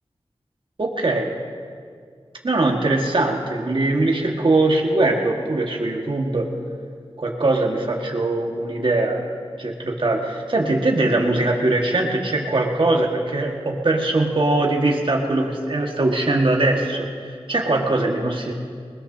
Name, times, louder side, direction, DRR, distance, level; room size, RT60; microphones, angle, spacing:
voice 1, 0.8-1.3 2.4-6.5 7.2-9.3 9.5-17.1 17.5-18.5, right 2 dB, 55° right, -1 dB, 1.7 m, -21 dB
20.5 x 20.0 x 2.8 m, 2.1 s
cardioid pair, 45°, 10 cm